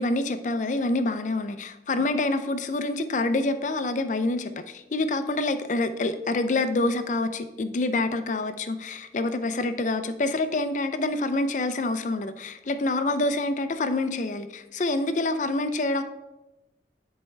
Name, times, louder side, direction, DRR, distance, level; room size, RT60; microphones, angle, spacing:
voice 1, 0.0-16.0, left 2 dB, 45° left, 10 dB, 0.4 m, -27 dB
10.0 x 4.4 x 3.2 m, 1.0 s
head